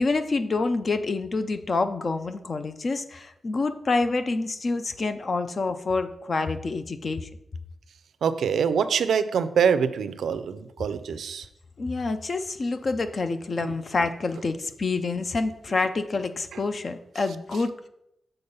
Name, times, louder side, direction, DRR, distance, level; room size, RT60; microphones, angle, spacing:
voice 1, 0.0-7.3 11.8-17.9, left 3 dB, 35° left, 10 dB, 0.4 m, -27 dB
voice 2, 8.2-11.5 13.6-13.7, right 7 dB, 90° right, 12 dB, 0.4 m, -24 dB
6.8 x 3.9 x 5.4 m, 0.82 s
wide cardioid pair, 165°, 0 cm